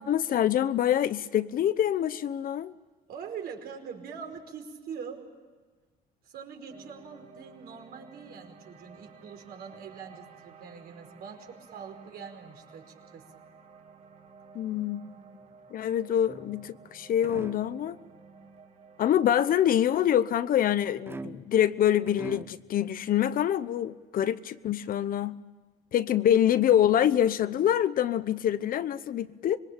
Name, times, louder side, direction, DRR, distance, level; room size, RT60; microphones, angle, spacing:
voice 1, 0.0-2.7 14.5-15.0 15.7-18.0 19.0-25.4 25.9-29.6, left 10 dB, 55° left, 14 dB, 1.0 m, -25 dB
voice 2, 3.1-5.3 6.2-12.9 13.1-13.3, right 6 dB, 65° right, 3 dB, 5.1 m, -43 dB
sound 1, 6.7-23.0, right 5 dB, 40° right, 3.2 m, -54 dB
sound 2, 16.3-16.8 17.2-17.8 21.1-21.7 22.0-22.7, right 3 dB, 15° right, 0.8 m, -42 dB
26.0 x 21.5 x 8.9 m, 1.4 s
cardioid pair, 110°, 17 cm